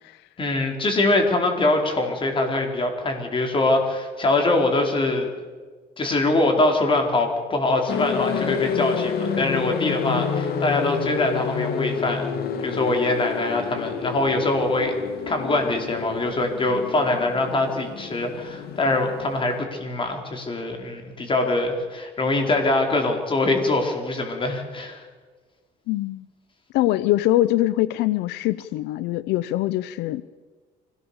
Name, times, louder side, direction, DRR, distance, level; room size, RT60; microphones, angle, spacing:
voice 1, 0.4-5.3 6.0-12.2 12.6-14.9 15.3-25.0, left 2 dB, 30° left, 3 dB, 4.8 m, -23 dB
sound 1, 7.9-19.6, left 6 dB, 65° left, 2.3 m, -29 dB
voice 2, 25.9-26.2 26.7-30.2, left 15 dB, 90° left, 16 dB, 0.7 m, -23 dB
25.0 x 18.0 x 7.1 m, 1.4 s
cardioid pair, 110°, 17 cm